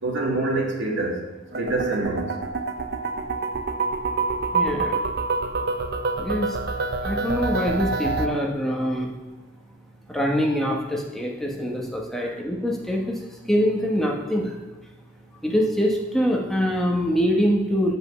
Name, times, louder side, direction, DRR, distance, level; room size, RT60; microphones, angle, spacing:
voice 1, 0.0-1.2 1.6-2.3 12.2-12.3, right 2 dB, 70° right, -1 dB, 2.0 m, -25 dB
sound 1, 1.5-8.3, right 3 dB, 50° right, 0.6 m, -27 dB
voice 2, 4.5-5.0 6.2-6.5 7.0-9.1 10.1-13.2 13.5-14.5 15.4-18.0, equal, ahead, -1 dB, 1.1 m, -24 dB
7.7 x 5.3 x 6.8 m, 1.2 s
head